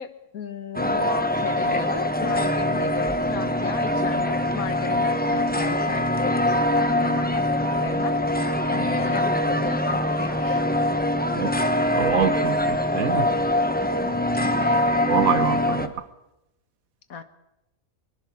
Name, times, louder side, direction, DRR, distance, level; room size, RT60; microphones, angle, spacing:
voice 1, 0.0-10.6 14.3-14.9 17.1-17.2, left 6 dB, 75° left, 10 dB, 1.8 m, -35 dB
sound 1, 0.7-15.9, left 1 dB, 5° left, 1.0 m, -23 dB
voice 2, 12.0-13.3 15.1-15.9, right 8 dB, 70° right, 12 dB, 1.5 m, -25 dB
22.0 x 22.0 x 6.1 m, 0.89 s
omnidirectional pair, 1.5 m